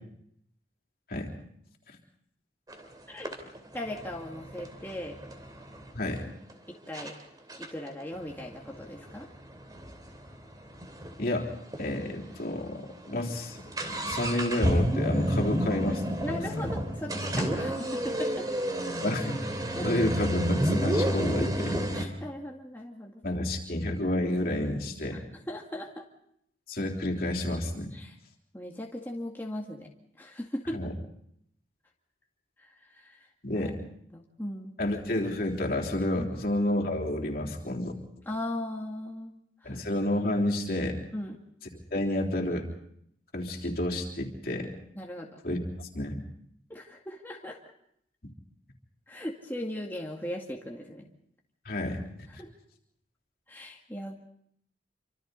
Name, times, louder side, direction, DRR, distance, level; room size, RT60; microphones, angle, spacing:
sound 1, 2.7-2.8 3.2-5.9 6.5-6.6 6.9-7.1 7.5-11.2 11.5-11.6 11.7-11.8 12.5-12.6 12.9-22.1, equal, 20° right, 2.8 m, -30 dB
voice 1, 3.7-5.2 6.7-7.2 7.6-9.3 16.2-18.5 19.8-19.9 21.9-23.2 25.1-25.2 25.5-26.1 27.9-28.1 28.5-29.9 30.2-30.9 32.6-33.2 33.5-33.7 34.1-34.7 36.2-36.3 38.3-39.3 39.6-39.8 41.1-41.4 44.9-45.4 46.7-47.6 49.1-51.1 52.4-52.5 53.5-54.2, left 1 dB, 10° left, -1 dB, 2.0 m, -38 dB
voice 2, 5.9-6.3 11.2-11.5 11.8-13.6 14.1-16.2 16.6-16.7 19.0-19.4 19.8-21.8 23.2-25.2 26.7-27.9 30.7-30.9 33.4-33.8 34.8-37.9 39.6-41.0 41.9-42.7 43.3-44.7 45.4-45.6 45.9-46.2 51.6-52.0 52.3-52.4, left 1 dB, 55° left, 0 dB, 3.4 m, -30 dB
27.5 x 25.5 x 4.0 m, 0.70 s
head